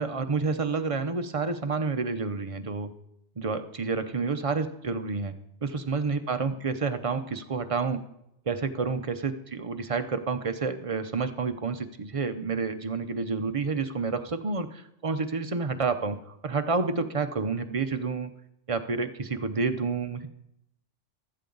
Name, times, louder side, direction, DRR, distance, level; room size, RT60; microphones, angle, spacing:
voice 1, 0.0-2.9 3.4-5.4 5.6-8.0 8.5-16.2 16.4-18.3 18.7-20.3, right 4 dB, 35° right, 8 dB, 0.7 m, -29 dB
15.0 x 12.0 x 3.9 m, 0.81 s
omnidirectional pair, 1.3 m